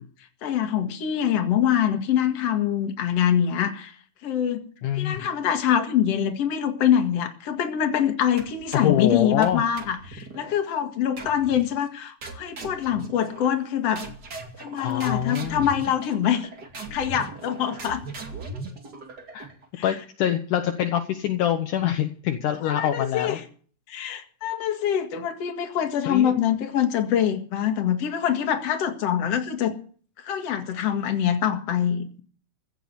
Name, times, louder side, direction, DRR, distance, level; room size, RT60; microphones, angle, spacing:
voice 1, 0.4-4.0 4.2-4.7 4.9-14.0 14.6-16.5 16.9-18.0 19.8-19.9 22.6-23.4 23.9-29.8 30.2-32.2, left 9 dB, 50° left, 6 dB, 2.6 m, -24 dB
voice 2, 4.8-5.3 8.7-9.6 14.8-15.7 19.3-19.5 19.8-23.4 26.1-26.3, left 10 dB, 70° left, 6 dB, 2.4 m, -25 dB
sound 1, 8.4-9.0 9.4-10.6 11.2-11.7 12.2-13.7 14.0-19.7, right 3 dB, 30° right, 2.4 m, -39 dB
15.5 x 7.8 x 8.3 m, 0.44 s
omnidirectional pair, 4.0 m